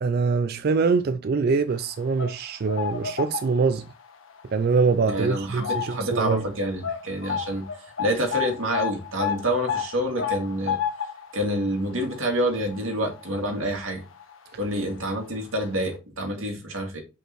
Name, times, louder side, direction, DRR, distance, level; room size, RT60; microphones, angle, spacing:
voice 1, 0.0-3.9 4.5-6.5, right 4 dB, 50° right, 0.3 m, -24 dB
sound 1, 1.9-3.9 4.3-4.5 5.1-6.2 6.4-6.5 6.8-13.9 14.2-14.3 15.2-15.3 15.6-15.7, left 7 dB, 85° left, 1.1 m, -31 dB
voice 2, 5.1-10.8 11.3-14.0 14.6-17.0, equal, 90° right, 2.2 m, -27 dB
6.4 x 5.3 x 3.0 m
head